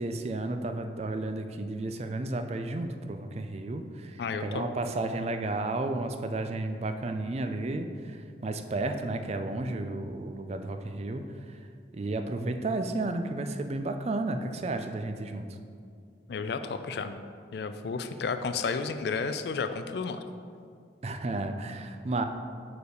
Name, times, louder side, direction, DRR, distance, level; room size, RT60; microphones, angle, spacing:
voice 1, 0.0-11.6 11.9-15.5 21.0-22.2, right 2 dB, 35° right, 7 dB, 0.4 m, -32 dB
voice 2, 4.2-4.7 16.3-17.2 17.5-20.2, left 5 dB, 60° left, 9 dB, 0.3 m, -32 dB
6.4 x 4.8 x 5.1 m, 2.3 s
head